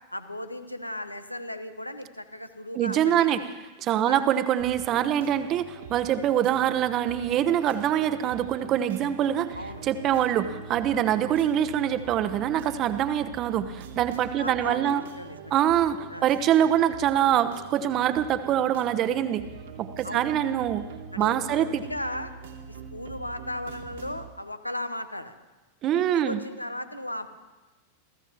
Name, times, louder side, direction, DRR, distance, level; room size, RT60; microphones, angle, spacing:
voice 1, 0.1-3.4 4.1-4.3 9.5-9.8 14.4-15.5 16.1-16.2 20.0-20.3 21.1-22.3 22.7-25.4 25.9-27.3, left 1 dB, 85° left, 10 dB, 1.2 m, -36 dB
voice 2, 2.7-3.4 3.8-9.6 9.8-15.0 15.5-19.4 19.8-20.8 21.2-21.8 25.8-26.4, right 10 dB, 35° right, 11 dB, 1.0 m, -24 dB
sound 1, 4.6-24.3, right 6 dB, 60° right, 2.0 m, -44 dB
27.5 x 15.5 x 3.1 m, 1.2 s
figure-of-eight pair, 90°, 0 cm